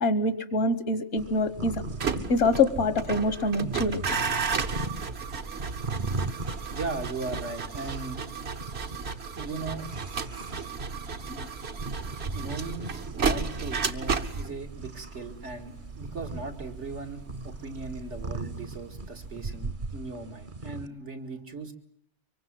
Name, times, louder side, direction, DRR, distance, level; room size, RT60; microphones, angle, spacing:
voice 1, 0.0-1.8 2.3-4.0 11.3-11.5, left 2 dB, 75° left, 12 dB, 1.6 m, -25 dB
sound 1, 1.2-20.9, right 3 dB, 45° right, 1.3 m, -38 dB
sound 2, 1.9-18.9 19.1-19.6, right 5 dB, 65° right, 1.6 m, -34 dB
voice 2, 6.7-8.2 9.4-9.8 10.4-10.5 11.1-11.2 12.3-21.7, right 3 dB, 80° right, 4 dB, 2.6 m, -38 dB
25.0 x 23.0 x 7.7 m, 0.66 s
omnidirectional pair, 1.2 m